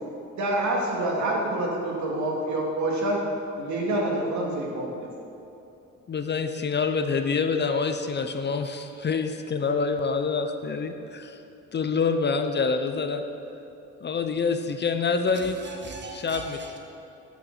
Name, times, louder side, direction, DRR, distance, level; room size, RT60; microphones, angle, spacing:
voice 1, 0.3-3.3 3.6-5.1, right 1 dB, 70° right, -2 dB, 2.2 m, -27 dB
voice 2, 6.1-11.4 11.7-13.2 14.0-15.6 16.1-16.6, left 5 dB, 35° left, 7 dB, 0.6 m, -26 dB
voice 3, 15.3-16.8, right 3 dB, 35° right, 1 dB, 1.7 m, -41 dB
9.9 x 5.9 x 7.3 m, 2.8 s
cardioid pair, 90°, 30 cm